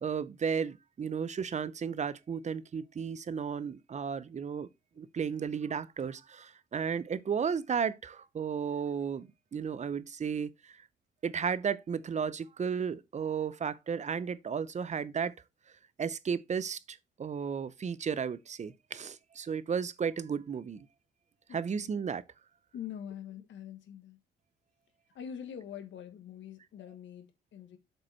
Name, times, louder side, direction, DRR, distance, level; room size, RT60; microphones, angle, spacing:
voice 1, 0.0-4.7 5.0-10.8 11.2-15.3 16.0-20.8 21.5-22.2, right 6 dB, 35° right, 0.7 m, -34 dB
voice 2, 21.5-22.0 22.7-24.2 25.1-27.8, left 9 dB, 70° left, 1.7 m, -44 dB
7.7 x 4.9 x 4.4 m
cardioid pair, 90°, 20 cm